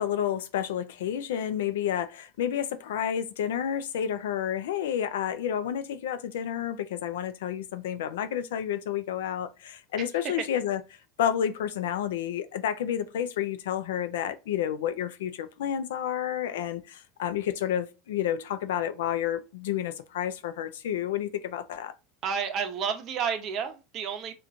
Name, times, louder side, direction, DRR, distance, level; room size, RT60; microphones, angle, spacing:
voice 1, 0.0-10.8 11.2-21.9, left 10 dB, 85° left, 0.5 m, -30 dB
voice 2, 10.0-10.5 22.2-24.3, right 7 dB, 45° right, 0.8 m, -31 dB
4.3 x 2.5 x 2.5 m
supercardioid pair, 115°, 0 cm